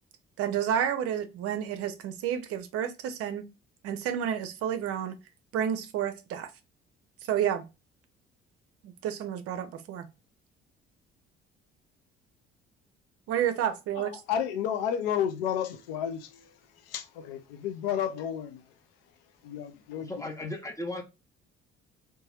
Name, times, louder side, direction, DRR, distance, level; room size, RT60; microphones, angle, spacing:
voice 1, 0.4-3.4 3.8-5.1 5.5-6.5 7.3-7.6 9.0-10.1 13.3-14.1, right 9 dB, 50° right, 0.6 m, -30 dB
voice 2, 14.0-16.5 16.9-18.6 19.4-20.1, left 9 dB, 70° left, 0.5 m, -31 dB
voice 3, 20.0-21.0, left 2 dB, 10° left, 0.8 m, -36 dB
2.7 x 2.2 x 3.0 m
figure-of-eight pair, 50°, 30 cm